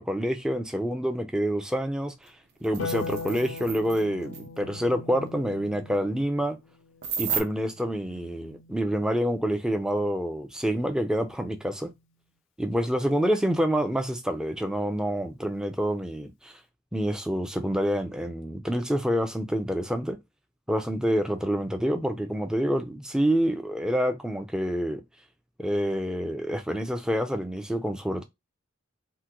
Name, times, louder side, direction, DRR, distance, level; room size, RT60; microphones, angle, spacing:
voice 1, 0.0-2.3 2.6-6.6 7.2-11.9 12.6-16.5 16.9-20.2 20.7-25.0 25.6-28.2, equal, 5° right, 0.4 m, -27 dB
sound 1, 2.3-2.4 2.6-4.0 4.3-4.4 7.0-7.4, right 7 dB, 55° right, 0.5 m, -33 dB
Harp, 2.8-9.3 10.9-11.9, left 4 dB, 75° left, 0.4 m, -41 dB
3.6 x 2.1 x 2.9 m
head